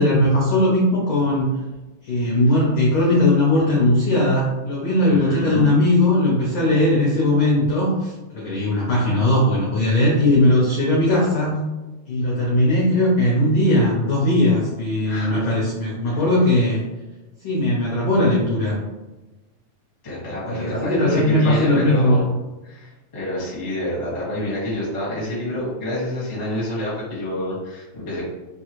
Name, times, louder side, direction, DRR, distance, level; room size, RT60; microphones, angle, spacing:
voice 1, 0.0-1.5 2.0-11.6 12.1-16.8 17.4-18.8 20.5-22.2, left 1 dB, 80° left, -4 dB, 1.1 m, -19 dB
voice 2, 5.1-5.8 15.0-15.5 16.0-16.2 20.0-22.3 22.6-28.2, left 1 dB, 35° left, -7 dB, 0.5 m, -28 dB
4.5 x 2.4 x 3.0 m, 1.1 s
omnidirectional pair, 3.4 m